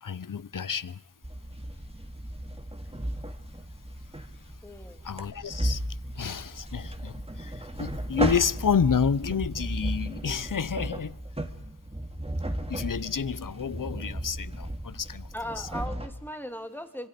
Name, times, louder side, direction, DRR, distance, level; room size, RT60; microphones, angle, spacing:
voice 1, 0.0-1.0 5.0-5.8 6.1-11.2 12.7-15.3 15.6-15.7, left 6 dB, 60° left, 0.7 m, -29 dB
sound 1, 1.2-16.1, right 1 dB, 15° right, 2.1 m, -35 dB
voice 2, 4.6-5.0 15.3-17.1, equal, 5° left, 2.7 m, -38 dB
25.5 x 25.5 x 5.2 m
wide cardioid pair, 45°, 36 cm